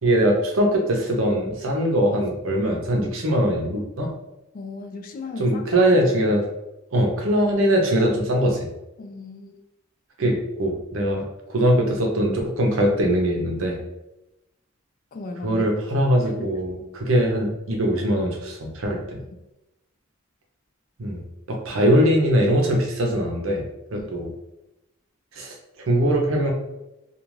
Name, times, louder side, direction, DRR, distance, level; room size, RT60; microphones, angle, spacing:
voice 1, 0.0-4.1 5.4-6.5 6.9-8.7 10.2-11.2 11.5-13.8 15.4-19.2 21.0-21.2 21.5-23.6 23.9-24.3 25.4-25.5 25.9-26.5, equal, 75° right, 1 dB, 0.6 m, -21 dB
voice 2, 4.5-5.8 6.3-6.4 9.0-9.6 15.1-15.6 23.9-24.1, left 3 dB, 40° left, 5 dB, 0.3 m, -36 dB
2.4 x 2.3 x 3.1 m, 0.92 s
head